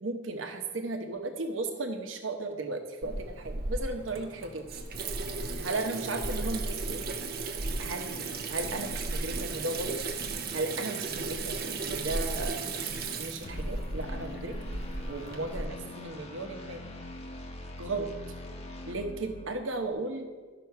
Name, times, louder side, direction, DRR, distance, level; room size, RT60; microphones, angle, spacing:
voice 1, 0.0-4.8 5.6-7.0 7.8-10.0 10.5-12.6 13.2-14.5 15.1-16.9 17.8-18.1 18.9-20.3, right 2 dB, 90° right, 5 dB, 1.0 m, -35 dB
Water tap faucet / Sink (filling or washing), 3.0-15.7, right 3 dB, 55° right, 0.7 m, -35 dB
sound 1, 13.4-19.9, left 2 dB, 35° left, 0.9 m, -43 dB
12.0 x 6.0 x 4.7 m, 1.4 s
head